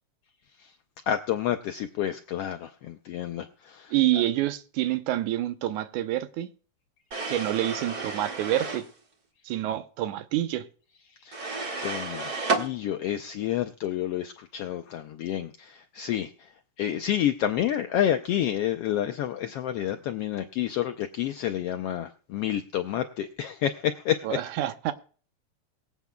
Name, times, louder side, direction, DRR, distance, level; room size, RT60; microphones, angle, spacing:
voice 1, 1.1-3.9 11.2-11.4 11.8-16.5 16.8-24.4, left 11 dB, 80° left, 7 dB, 1.4 m, -29 dB
voice 2, 3.9-6.5 7.3-8.8 9.5-10.7 24.2-24.9, right 14 dB, 80° right, 11 dB, 2.2 m, -27 dB
sound 1, 7.1-8.9 11.3-12.7, right 3 dB, 35° right, 1.9 m, -31 dB
23.0 x 8.3 x 2.2 m, 0.40 s
omnidirectional pair, 3.5 m